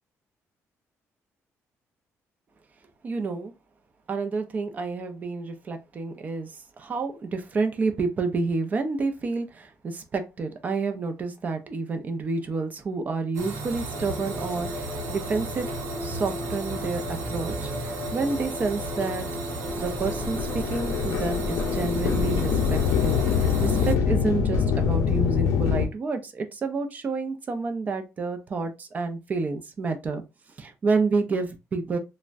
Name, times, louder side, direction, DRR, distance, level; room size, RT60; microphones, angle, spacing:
voice 1, 3.0-3.5 4.1-15.7 16.0-19.3 19.8-30.2 30.6-32.0, right 4 dB, 30° right, 0.4 m, -29 dB
sound 1, 13.3-23.9, right 3 dB, 85° right, 0.8 m, -34 dB
sound 2, 13.9-22.7, left 3 dB, 50° left, 1.0 m, -37 dB
sound 3, 19.7-25.9, left 7 dB, 80° left, 0.5 m, -24 dB
3.3 x 2.1 x 2.5 m
cardioid pair, 165°, 5 cm